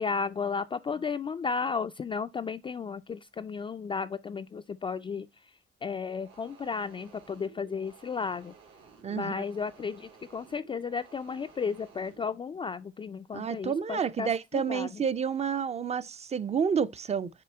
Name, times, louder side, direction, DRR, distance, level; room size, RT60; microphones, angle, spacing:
voice 1, 0.0-5.3 5.8-8.5 9.1-14.9, left 5 dB, 25° left, 0.4 m, -34 dB
sound 1, 6.1-12.2, right 5 dB, 80° right, 2.6 m, -55 dB
voice 2, 9.0-9.5 13.3-17.3, right 7 dB, 35° right, 0.5 m, -30 dB
6.8 x 4.3 x 4.3 m
cardioid pair, 90°, 20 cm